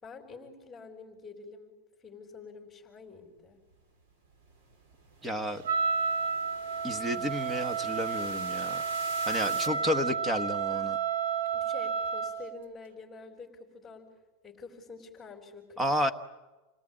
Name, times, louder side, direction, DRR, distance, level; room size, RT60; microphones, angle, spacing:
voice 1, 0.0-3.6 9.4-9.9 11.5-14.2 14.4-15.9, left 4 dB, 10° left, -5 dB, 3.9 m, -48 dB
sound 1, 3.7-9.7, right 3 dB, 60° right, 4.1 m, -49 dB
voice 2, 5.2-5.6 6.8-8.8 9.3-11.0 15.8-16.1, equal, 10° right, 9 dB, 1.2 m, -31 dB
Wind instrument woodwind instrument, 5.6-12.4, right 5 dB, 75° right, 1.5 m, -31 dB
28.5 x 18.5 x 8.9 m, 1.2 s
supercardioid pair, 150°, 0 cm